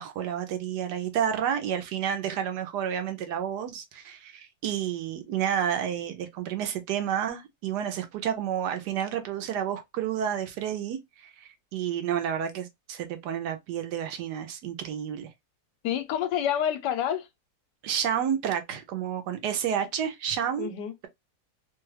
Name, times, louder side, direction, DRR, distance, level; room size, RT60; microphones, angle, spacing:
voice 1, 0.0-15.3 17.8-20.7, right 9 dB, 75° right, 1.1 m, -30 dB
voice 2, 15.8-17.3 20.6-21.1, left 9 dB, 75° left, 1.2 m, -28 dB
3.0 x 2.3 x 3.1 m
omnidirectional pair, 2.0 m